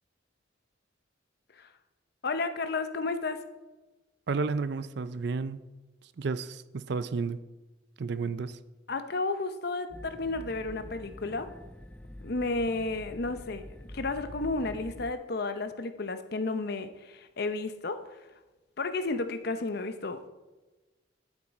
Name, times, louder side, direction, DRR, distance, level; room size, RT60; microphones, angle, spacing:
voice 1, 2.2-3.4 8.9-11.5 12.2-13.6 13.9-18.2 18.8-20.3, left 3 dB, 55° left, 10 dB, 0.7 m, -32 dB
voice 2, 4.3-5.6 6.2-7.4 8.0-8.6, right 4 dB, 60° right, 14 dB, 0.5 m, -31 dB
sound 1, 9.9-15.1, left 1 dB, 5° left, 0.3 m, -46 dB
12.5 x 7.4 x 4.1 m, 1.2 s
head